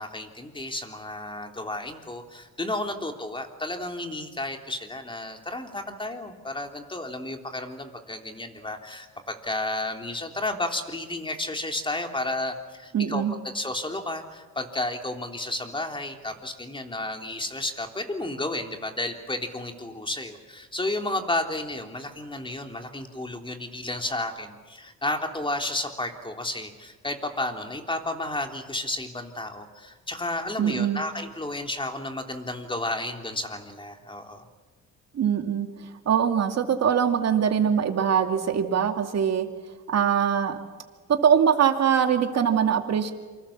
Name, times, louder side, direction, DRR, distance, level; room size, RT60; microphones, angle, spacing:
voice 1, 0.0-13.2 13.5-34.4, left 2 dB, 15° left, 4 dB, 3.5 m, -32 dB
voice 2, 12.9-13.3 30.6-31.0 35.1-39.5 39.9-40.6 41.1-43.1, right 8 dB, 60° right, 5 dB, 2.5 m, -23 dB
27.5 x 25.0 x 7.4 m, 1.4 s
cardioid pair, 90°, 30 cm